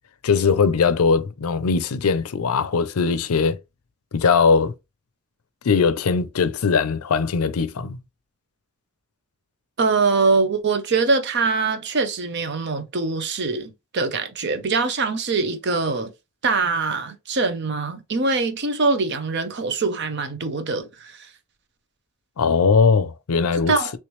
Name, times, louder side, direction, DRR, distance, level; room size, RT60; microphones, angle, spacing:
voice 1, 0.2-3.6 4.1-4.7 5.6-8.0 22.4-23.7, left 5 dB, 85° left, 0.5 m, -20 dB
voice 2, 9.8-16.1 16.4-21.2 23.7-23.9, right 4 dB, 50° right, 0.7 m, -23 dB
3.2 x 3.1 x 3.0 m
head